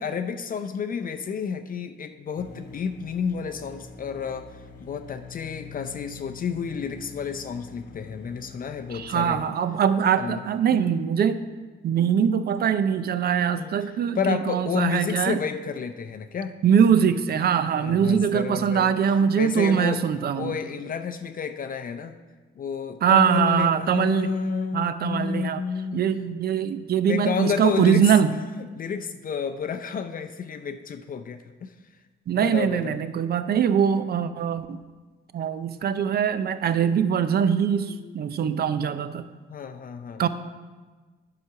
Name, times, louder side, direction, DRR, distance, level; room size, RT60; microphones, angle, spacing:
voice 1, 0.0-9.4 10.2-10.4 10.7-10.8 13.6-13.7 14.1-16.5 17.8-20.0 20.3-22.2 22.6-26.0 27.0-28.1 28.8-31.7 32.4-33.0 37.9-38.1 39.5-40.2, left 6 dB, 45° left, 7 dB, 0.5 m, -30 dB
sound 1, 2.4-9.5, left 5 dB, 65° left, 1.0 m, -45 dB
voice 2, 8.9-11.4 11.8-15.4 16.6-20.6 23.0-24.3 24.7-25.6 25.9-28.3 32.3-34.8 35.3-39.3 40.2-40.3, right 8 dB, 50° right, 12 dB, 0.6 m, -22 dB
9.4 x 4.9 x 5.8 m, 1.3 s
cardioid pair, 90°, 20 cm